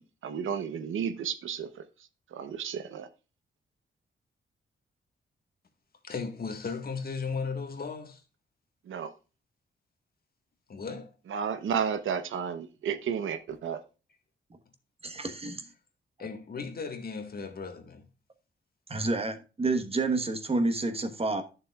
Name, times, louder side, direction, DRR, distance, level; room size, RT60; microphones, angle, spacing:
voice 1, 0.0-1.8 2.3-3.1 8.9-9.1 11.3-13.8, right 7 dB, 80° right, 0.9 m, -32 dB
voice 2, 6.0-8.2 10.7-11.1 16.2-18.0, left 5 dB, 50° left, 1.6 m, -36 dB
voice 3, 15.0-15.7 18.9-21.4, right 3 dB, 30° right, 1.3 m, -29 dB
11.0 x 6.8 x 2.4 m
cardioid pair, 95°, 20 cm